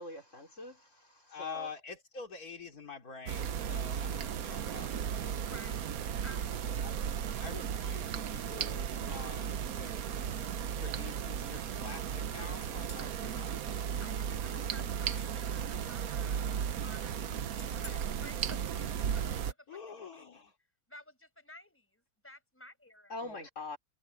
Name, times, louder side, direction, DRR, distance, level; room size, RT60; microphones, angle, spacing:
voice 1, 0.0-1.7 23.1-23.8, left 2 dB, 55° left, 4.3 m, -44 dB
voice 2, 1.3-5.4 6.8-7.0 7.4-10.3 10.7-13.9 19.7-20.5 23.2-23.5, left 5 dB, 90° left, 3.3 m, -47 dB
sound 1, 3.3-19.5, right 8 dB, 80° right, 1.4 m, -35 dB
voice 3, 5.5-6.4 14.0-16.4 16.8-20.4 20.9-23.1, left 1 dB, 10° left, 5.3 m, -54 dB
sound 2, 12.5-14.3 14.8-15.5 15.9-16.4 16.6-17.1 17.6-17.9, left 1 dB, 25° right, 2.2 m, -55 dB
omnidirectional pair, 1.5 m